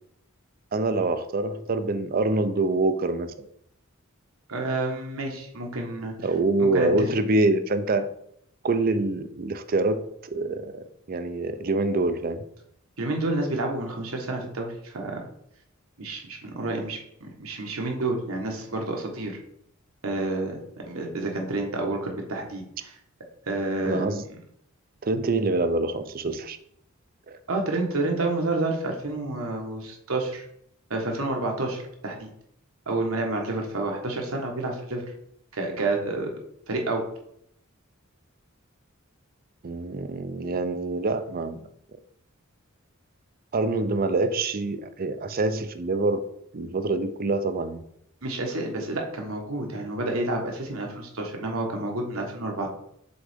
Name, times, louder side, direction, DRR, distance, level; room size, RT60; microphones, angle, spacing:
voice 1, 0.7-3.3 6.2-8.1 8.6-12.4 23.8-24.3 25.0-26.6 27.3-27.4 39.6-41.6 43.5-46.2 46.5-47.8, right 2 dB, 45° right, 10 dB, 0.5 m, -25 dB
voice 2, 4.5-6.1 6.6-7.1 13.0-15.2 16.0-19.4 20.0-23.0 23.5-24.2 27.5-30.5 30.9-32.3 32.9-35.0 35.5-36.3 36.7-37.0 48.2-52.7, right 2 dB, 85° right, 1 dB, 1.3 m, -29 dB
6.9 x 3.8 x 3.6 m, 0.72 s
head